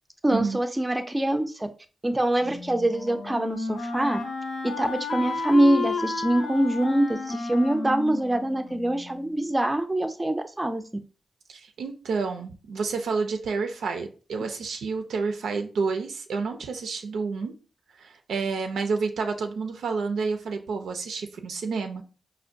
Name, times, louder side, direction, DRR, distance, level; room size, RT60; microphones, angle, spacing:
voice 1, 0.2-1.7 2.0-4.2 4.6-10.8, right 1 dB, 15° right, 8 dB, 0.4 m, -24 dB
Wind instrument woodwind instrument, 2.4-9.3, left 3 dB, 80° left, 0.6 m, -32 dB
voice 2, 11.5-17.5 18.0-22.0, right 4 dB, 90° right, 5 dB, 0.4 m, -29 dB
4.3 x 2.1 x 2.5 m, 0.37 s
cardioid pair, 60°, 0 cm